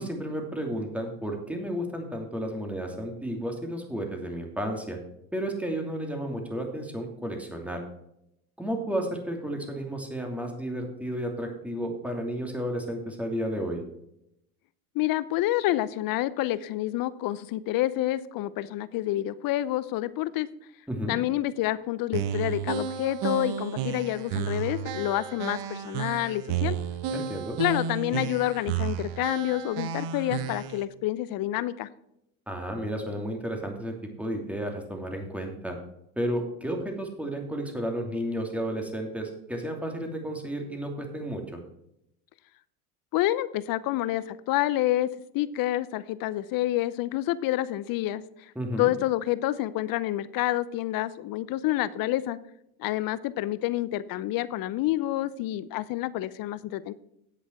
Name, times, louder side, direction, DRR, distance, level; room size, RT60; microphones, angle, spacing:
voice 1, 0.0-5.0 5.3-7.8 8.6-13.8 20.9-21.2 27.1-27.6 32.5-33.9 34.2-35.8 36.2-41.6 48.6-48.9, equal, 5° right, 2 dB, 2.8 m, -32 dB
voice 2, 14.9-20.5 21.1-26.8 27.6-31.9 43.1-45.1 45.3-48.2 48.8-52.4 52.8-56.9, left 15 dB, 50° left, 17 dB, 0.8 m, -28 dB
sound 1, 22.1-30.8, right 8 dB, 60° right, 1.0 m, -32 dB
10.0 x 8.1 x 4.6 m, 0.78 s
hypercardioid pair, 85°, 44 cm